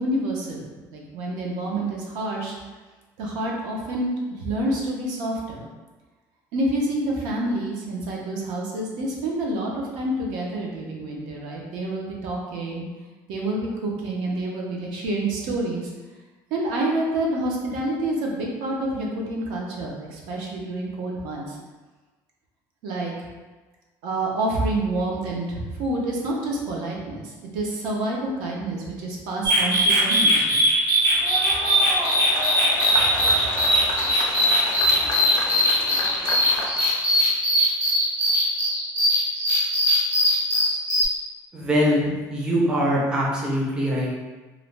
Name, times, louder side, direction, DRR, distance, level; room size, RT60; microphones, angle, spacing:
voice 1, 0.0-2.5 3.2-5.7 6.5-12.9 13.3-15.9 16.5-21.6 22.8-23.1 24.0-30.6 33.0-33.5, right 1 dB, 80° right, -2 dB, 0.6 m, -28 dB
sound 1, 29.4-41.1, equal, 60° right, 1.3 m, -21 dB
sound 2, 31.1-37.0, left 2 dB, 70° left, 0.5 m, -31 dB
voice 2, 41.5-44.1, equal, 10° right, -5 dB, 0.4 m, -22 dB
2.5 x 2.1 x 3.1 m, 1.2 s
cardioid pair, 170°, 8 cm